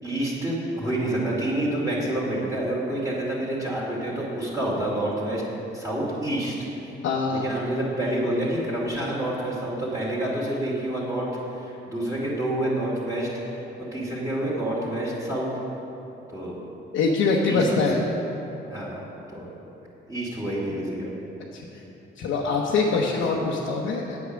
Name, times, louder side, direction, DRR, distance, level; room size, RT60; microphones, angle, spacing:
voice 1, 0.0-5.4 5.7-6.5 7.3-11.3 11.5-13.6 13.9-15.5 16.3-16.6 17.5-17.6 18.7-19.0 19.3-19.5 20.1-21.1 22.9-23.0, right 1 dB, 15° right, -7 dB, 2.5 m, -28 dB
voice 2, 7.0-7.5 16.9-18.0 21.5-21.6 22.2-24.2, left 4 dB, 90° left, -3 dB, 1.0 m, -23 dB
8.4 x 8.2 x 6.3 m, 3.0 s
cardioid pair, 90°, 20 cm